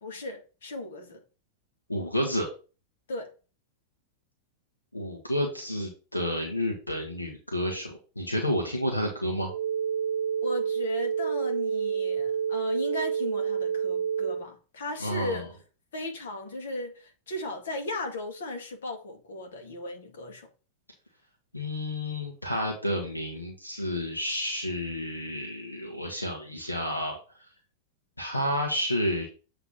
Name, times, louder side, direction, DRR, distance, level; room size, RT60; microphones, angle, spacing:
voice 1, 0.0-1.2 3.1-3.3 10.4-15.4 15.9-20.5, left 2 dB, 60° left, 1.9 m, -36 dB
voice 2, 1.9-2.5 4.9-9.5 15.0-15.4 21.5-27.2 28.2-29.3, equal, 85° left, 1.4 m, -30 dB
sound 1, 9.5-14.5, right 7 dB, 60° right, 0.6 m, -29 dB
8.2 x 3.3 x 5.6 m
figure-of-eight pair, 90°, 0 cm